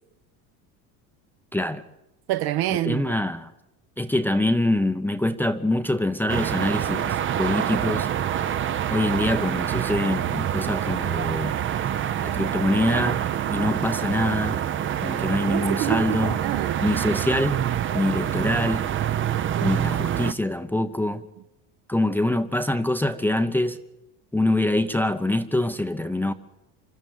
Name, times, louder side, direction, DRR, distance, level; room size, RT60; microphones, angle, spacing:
voice 1, 1.5-1.8 2.8-3.5 4.0-8.1 8.9-11.6 12.2-13.2 13.5-14.6 15.0-16.4 16.8-17.6 17.9-18.8 19.6-21.2 21.9-23.8 24.3-26.3, left 1 dB, 5° left, 0.7 m, -24 dB
voice 2, 2.3-3.1 15.5-16.8 19.5-19.7, right 14 dB, 60° right, 1.1 m, -27 dB
sound 1, 6.3-20.3, right 10 dB, 30° right, 0.7 m, -26 dB
25.5 x 13.0 x 9.2 m
supercardioid pair, 125°, 42 cm